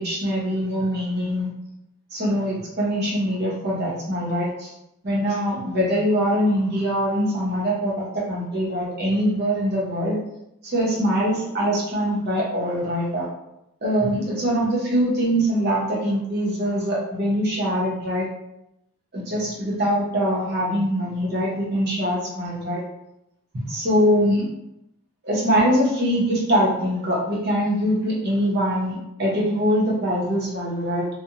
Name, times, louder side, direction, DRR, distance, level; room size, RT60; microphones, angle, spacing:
voice 1, 0.0-1.5 2.1-4.7 5.0-10.2 10.6-13.3 13.8-18.3 19.1-22.8 23.5-24.5 25.2-31.1, equal, 45° right, -4 dB, 0.7 m, -23 dB
2.4 x 2.0 x 2.8 m, 0.85 s
head